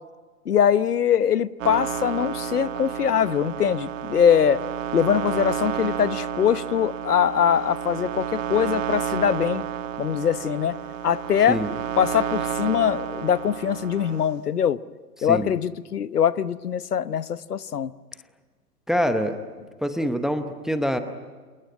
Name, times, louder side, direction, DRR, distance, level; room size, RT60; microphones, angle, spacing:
voice 1, 0.5-4.6 4.9-9.6 10.0-10.8 11.0-11.6 12.0-14.8 15.2-17.9, left 8 dB, 70° left, 16 dB, 1.1 m, -22 dB
sound 1, 1.6-14.3, right 9 dB, 50° right, 1.4 m, -31 dB
voice 2, 15.2-15.5 18.9-19.4 19.8-21.0, equal, ahead, 9 dB, 0.8 m, -25 dB
27.5 x 20.5 x 9.9 m, 1.4 s
figure-of-eight pair, 125°, 48 cm